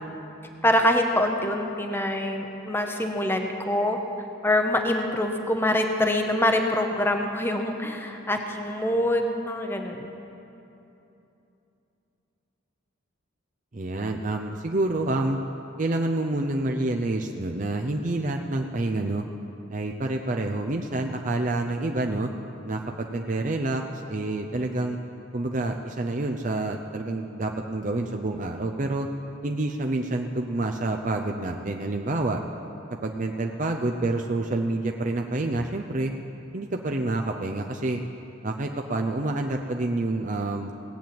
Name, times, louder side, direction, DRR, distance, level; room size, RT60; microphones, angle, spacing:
voice 1, 0.6-4.0 4.4-10.1, left 1 dB, 10° left, 4 dB, 0.8 m, -25 dB
voice 2, 13.7-15.4 15.8-19.2 19.7-22.3 22.6-25.0 25.3-29.1 29.4-32.4 33.0-36.1 36.5-38.0 38.4-40.7, right 2 dB, 35° right, 3 dB, 0.6 m, -28 dB
17.5 x 8.8 x 7.7 m, 2.9 s
head